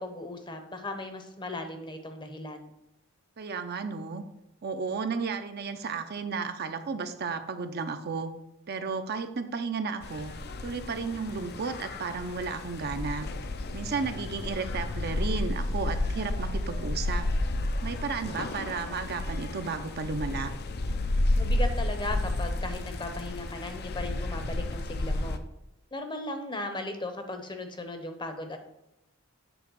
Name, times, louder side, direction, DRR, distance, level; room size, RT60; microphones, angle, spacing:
voice 1, 0.0-2.7 21.4-25.4 25.9-28.6, left 2 dB, 20° left, 7 dB, 0.8 m, -37 dB
voice 2, 3.4-4.2 4.6-8.3 8.7-10.3 10.6-13.3 13.7-17.3 17.8-20.5, right 4 dB, 50° right, 7 dB, 0.6 m, -33 dB
sound 1, 10.0-25.4, left 1 dB, 50° left, 0.6 m, -31 dB
8.1 x 3.5 x 6.2 m, 0.91 s
head